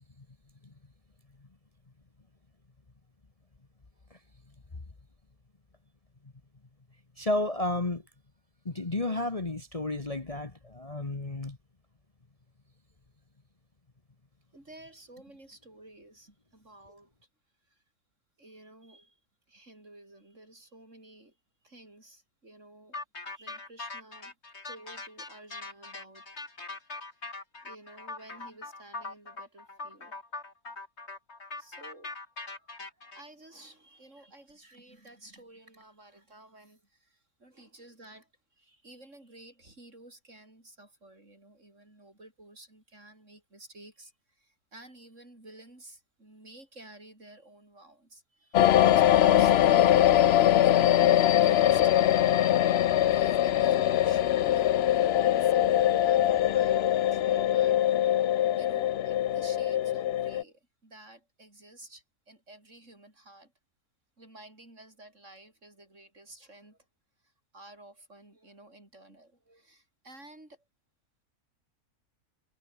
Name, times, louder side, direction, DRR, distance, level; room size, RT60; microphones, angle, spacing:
voice 1, 7.2-8.0 8.6-11.6, left 2 dB, 25° left, 1.5 m, -32 dB
voice 2, 14.5-17.1 17.7-17.8 18.4-19.2 19.5-21.4 21.6-23.0 23.3-24.4 24.7-26.3 27.0-27.2 27.6-30.1 31.6-32.1 32.4-52.1 52.9-58.2 58.6-63.5 64.2-66.8 67.2-70.6, right 1 dB, 50° right, 7.1 m, -53 dB
sound 1, 22.9-33.2, left 3 dB, 45° left, 3.4 m, -41 dB
sound 2, 48.5-60.4, left 11 dB, 65° left, 0.6 m, -22 dB
omnidirectional pair, 1.6 m